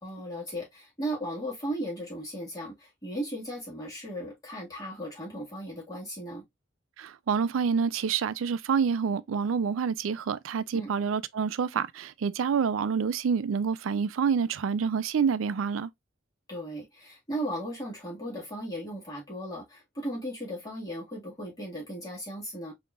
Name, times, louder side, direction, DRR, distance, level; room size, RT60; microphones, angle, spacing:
voice 1, 0.0-6.4 10.7-10.9 16.5-22.7, equal, 20° left, 1.9 m, -36 dB
voice 2, 7.0-15.9, right 6 dB, 90° right, 0.4 m, -27 dB
5.2 x 2.9 x 2.4 m
head